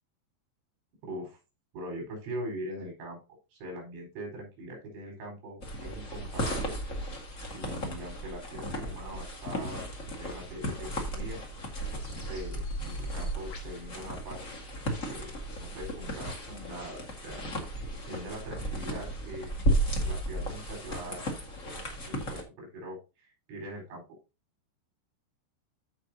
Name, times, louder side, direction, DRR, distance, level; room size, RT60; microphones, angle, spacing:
voice 1, 1.0-1.4 1.7-3.2 3.5-6.8 7.5-9.8 10.2-11.4 12.1-14.4 15.1-15.3 15.6-17.4 18.1-19.5 20.0-21.2 22.1-24.0, right 1 dB, 70° right, 0 dB, 6.7 m, -42 dB
sound 1, 5.6-22.4, right 1 dB, 60° left, 0.8 m, -34 dB
Bird vocalization bird call bird song, 11.0-15.3, left 4 dB, 80° left, 6.5 m, -58 dB
14.5 x 5.3 x 2.8 m, 0.28 s
omnidirectional pair, 5.2 m